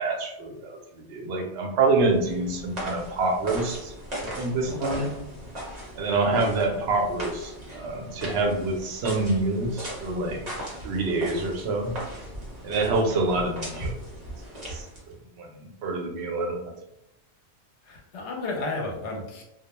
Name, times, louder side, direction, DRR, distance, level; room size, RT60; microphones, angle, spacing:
voice 1, 0.0-3.9 4.4-5.1 6.0-10.5 10.8-11.9 12.6-13.9 14.7-14.9 15.4-16.6, right 3 dB, 70° right, 2 dB, 0.8 m, -26 dB
sound 1, 1.9-15.2, right 1 dB, 40° right, 0.8 m, -38 dB
voice 2, 4.7-5.1 17.8-19.4, left 2 dB, 80° left, 1 dB, 0.9 m, -33 dB
2.3 x 2.1 x 2.9 m, 0.86 s
omnidirectional pair, 1.1 m